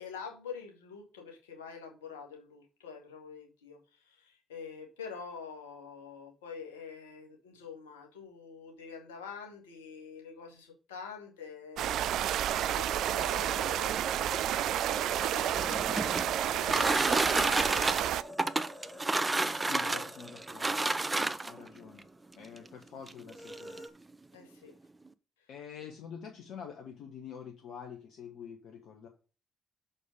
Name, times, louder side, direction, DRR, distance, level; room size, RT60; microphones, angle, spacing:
voice 1, 0.0-14.0 15.3-17.5 19.8-20.0 24.3-24.7 25.8-25.9, left 6 dB, 85° left, 2 dB, 1.8 m, -46 dB
sound 1, 11.8-18.2, right 11 dB, 70° right, 0.3 m, -30 dB
sound 2, 13.4-22.2 22.5-22.6 23.3-23.9, left 1 dB, ahead, 2.1 m, -47 dB
sound 3, 15.5-21.7 22.6-22.7 23.1-23.2 23.5-23.8, right 2 dB, 25° right, 0.7 m, -30 dB
voice 2, 19.6-22.1 22.4-23.8 25.5-29.1, left 7 dB, 70° left, 2 dB, 1.2 m, -47 dB
6.5 x 5.3 x 4.9 m, 0.34 s
hypercardioid pair, 40°, 0 cm